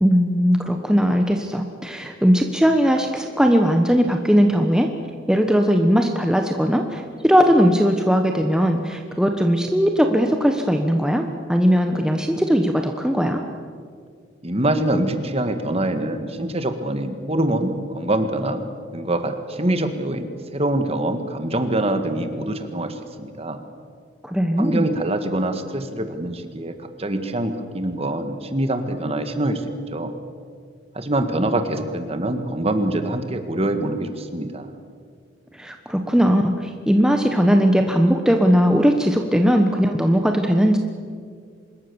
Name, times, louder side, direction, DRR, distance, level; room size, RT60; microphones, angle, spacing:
voice 1, 0.0-4.9 5.3-13.4 24.2-24.8 35.6-40.8, equal, 5° right, 4 dB, 1.1 m, -19 dB
voice 2, 14.4-18.6 18.9-23.6 24.6-26.7 27.0-29.6 29.9-30.1 30.9-34.7, right 1 dB, 30° right, 8 dB, 1.9 m, -24 dB
25.0 x 21.0 x 7.1 m, 2.1 s
head